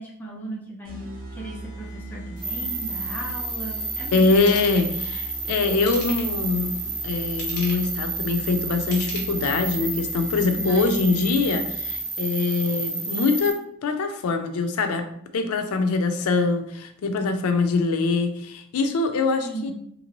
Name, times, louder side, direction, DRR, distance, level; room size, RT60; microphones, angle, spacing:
voice 1, 0.0-4.8 10.6-11.5 19.4-19.7, right 1 dB, 10° left, -3 dB, 0.5 m, -36 dB
sound 1, 0.9-12.2, right 2 dB, 65° right, 1.2 m, -40 dB
sound 2, 2.4-13.5, right 3 dB, 40° right, 0.9 m, -31 dB
voice 2, 4.1-6.7 7.0-15.1 15.3-19.7, left 3 dB, 85° left, 7 dB, 0.4 m, -23 dB
Ratchet pawl / Tools, 4.4-4.9 5.7-6.4 7.2-7.9 8.8-9.7 10.2-10.3, left 2 dB, 50° left, 0.9 m, -38 dB
2.9 x 2.6 x 2.9 m, 0.71 s
head